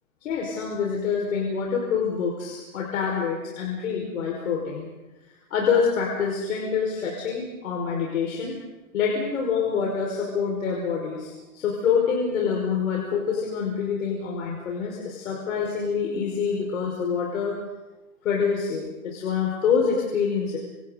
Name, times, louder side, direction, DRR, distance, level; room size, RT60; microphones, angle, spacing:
voice 1, 0.2-4.9 5.5-8.6 8.9-17.6 18.2-20.6, left 6 dB, 65° left, -2 dB, 5.4 m, -26 dB
28.5 x 27.5 x 4.1 m, 1.1 s
hypercardioid pair, 165°, 44 cm